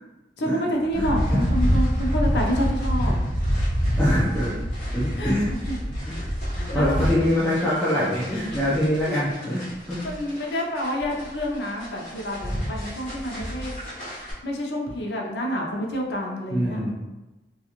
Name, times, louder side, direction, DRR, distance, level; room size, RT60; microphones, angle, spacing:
voice 1, 0.4-3.1 5.2-5.3 5.7-5.8 6.5-7.1 8.3-8.7 9.1-9.5 10.0-13.8 14.4-16.9, equal, 75° left, 0 dB, 0.5 m, -28 dB
sound 1, 0.9-14.3, equal, 45° left, 0.9 m, -27 dB
voice 2, 0.9-1.4 4.0-4.5 4.9-5.5 6.0-6.2 6.7-10.0 16.5-16.9, equal, 5° left, -10 dB, 0.4 m, -24 dB
2.4 x 2.3 x 2.9 m, 1.1 s
head